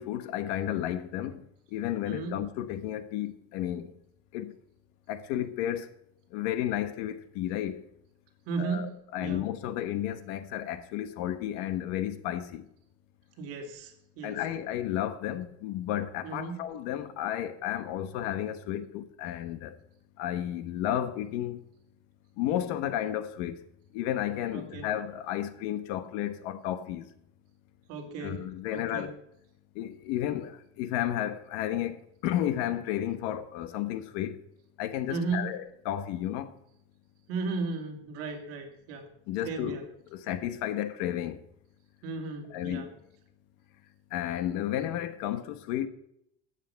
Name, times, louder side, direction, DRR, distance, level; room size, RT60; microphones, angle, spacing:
voice 1, 0.0-1.4 1.7-3.9 4.3-4.5 5.1-5.9 6.3-7.8 8.6-12.6 14.2-19.8 20.2-21.6 22.4-23.6 23.9-27.1 28.2-29.2 29.7-34.4 34.8-36.5 39.3-39.8 40.1-41.4 42.5-42.9 44.1-45.9, left 12 dB, 65° left, 1.2 m, -32 dB
voice 2, 2.1-2.4 8.5-9.5 13.4-14.4 16.2-16.7 24.5-24.9 27.9-28.5 28.7-29.2 35.1-35.5 37.3-39.1 39.4-39.8 42.0-42.9, right 4 dB, 50° right, 2.6 m, -35 dB
13.5 x 8.2 x 5.7 m
cardioid pair, 165°, 29 cm